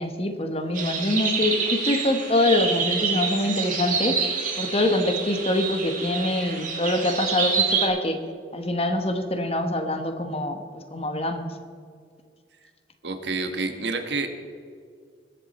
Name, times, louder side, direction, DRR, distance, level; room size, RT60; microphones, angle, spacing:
voice 1, 0.0-4.2 4.6-8.2 8.5-10.6 10.9-11.5, left 1 dB, 35° left, 6 dB, 1.2 m, -24 dB
sound 1, 0.7-7.9, right 5 dB, 45° right, 2.0 m, -27 dB
voice 2, 13.0-14.3, right 3 dB, 70° right, 6 dB, 1.3 m, -28 dB
20.0 x 8.1 x 4.2 m, 2.1 s
head